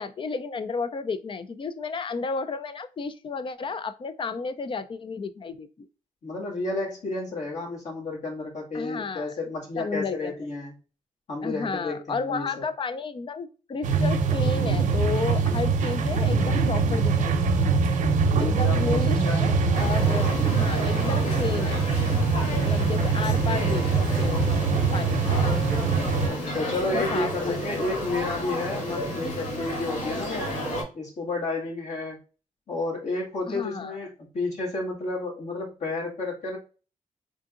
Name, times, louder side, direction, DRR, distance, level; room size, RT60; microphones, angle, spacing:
voice 1, 0.0-5.9 8.7-9.3 9.8-10.3 11.4-17.7 18.4-21.8 22.6-25.5 26.9-27.6 33.5-34.0, left 4 dB, 40° left, 11 dB, 0.5 m, -32 dB
voice 2, 6.2-10.7 11.3-12.6 18.3-19.5 23.0-23.1 26.2-30.5 30.9-32.2 32.7-36.6, left 2 dB, 65° left, -3 dB, 2.1 m, -31 dB
sound 1, 13.8-26.3, right 5 dB, 85° right, 0.7 m, -23 dB
sound 2, 19.7-30.8, equal, 90° left, 2.1 m, -32 dB
3.8 x 3.6 x 2.5 m, 0.35 s
cardioid pair, 95°, 13 cm